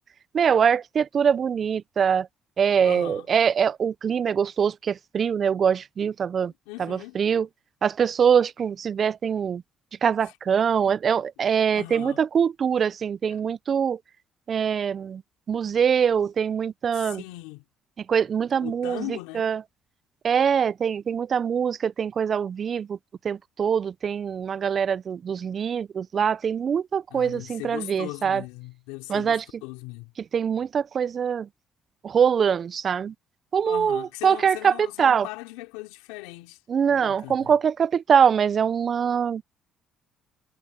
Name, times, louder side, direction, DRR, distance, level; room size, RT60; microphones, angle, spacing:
voice 1, 0.3-2.3 2.6-6.5 6.9-7.5 7.8-9.6 10.0-14.0 14.5-15.2 15.5-17.2 18.1-19.0 19.4-19.6 20.2-23.0 23.2-28.4 29.1-29.4 30.3-31.5 32.0-33.1 33.5-34.7 35.0-35.3 36.7-39.4, right 7 dB, 50° right, 0.4 m, -23 dB
voice 2, 2.8-3.3 6.7-7.2 10.2-10.4 11.7-12.2 13.3-13.4 16.9-17.6 18.6-19.5 27.1-30.1 33.6-36.6 36.9-37.5, left 21 dB, 90° left, 3.6 m, -39 dB
supercardioid pair, 70°, 0 cm